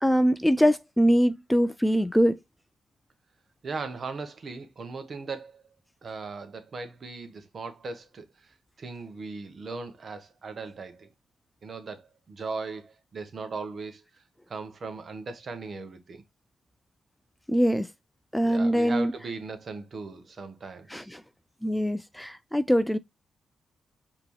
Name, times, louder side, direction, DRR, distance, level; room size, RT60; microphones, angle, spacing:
voice 1, 0.0-2.4 17.5-17.9 18.3-19.1 20.9-21.2 21.6-23.0, equal, 5° left, 0.3 m, -23 dB
voice 2, 3.6-5.6 6.0-8.3 8.8-11.1 11.6-14.0 14.5-16.2 18.4-21.1, right 4 dB, 55° right, 1.0 m, -38 dB
5.1 x 2.9 x 3.1 m
cardioid pair, 60°, 0 cm